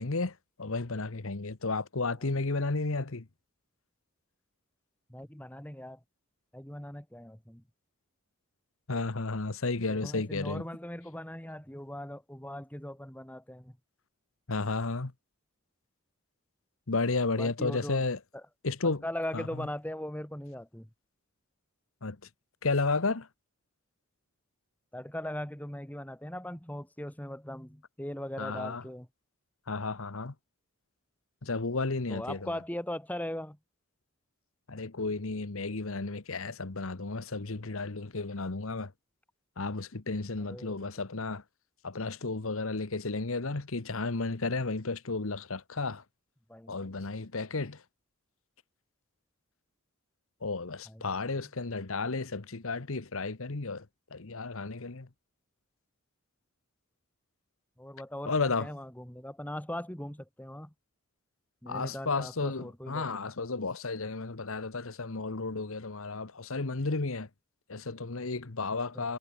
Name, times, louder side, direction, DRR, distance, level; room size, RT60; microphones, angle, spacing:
voice 1, 0.0-3.2 8.9-10.6 14.5-15.1 16.9-18.2 18.6-19.0 19.3-19.7 22.0-22.2 22.6-23.3 28.4-28.8 29.7-30.3 31.4-32.6 34.7-38.9 39.6-41.4 41.8-46.0 46.7-47.8 50.4-53.8 54.1-55.1 58.2-58.7 61.7-67.3 67.7-69.2, left 3 dB, 70° left, 1.2 m, -33 dB
voice 2, 5.1-6.0 6.5-7.6 9.9-13.7 17.3-18.0 18.8-20.9 24.9-29.1 32.1-33.6 40.5-40.9 46.5-46.9 50.9-51.0 57.8-60.7 61.6-63.1 68.9-69.1, left 1 dB, 5° left, 1.6 m, -39 dB
head